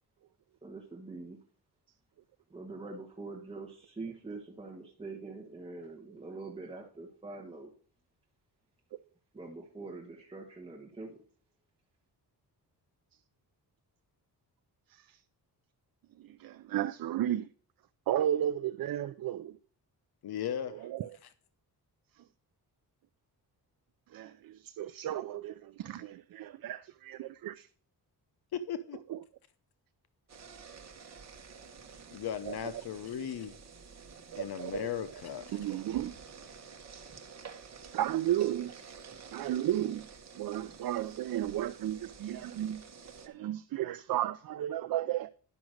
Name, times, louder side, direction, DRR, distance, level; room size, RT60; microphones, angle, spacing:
voice 1, 0.6-1.4 2.5-7.7 9.3-11.2, right 3 dB, 15° right, 1.5 m, -44 dB
voice 2, 16.2-17.5 18.1-19.6 20.7-21.2 24.1-27.7 29.1-29.2 32.5-32.7 34.3-34.9 35.5-36.1 37.9-38.8 39.3-40.1 40.3-42.8 43.2-45.3, right 12 dB, 60° right, 0.5 m, -34 dB
voice 3, 20.2-20.9 28.5-29.0 32.1-33.6 34.4-35.6, left 9 dB, 70° left, 0.8 m, -37 dB
sound 1, 30.3-43.3, right 6 dB, 40° right, 1.3 m, -50 dB
10.5 x 6.1 x 6.4 m
wide cardioid pair, 170°, 39 cm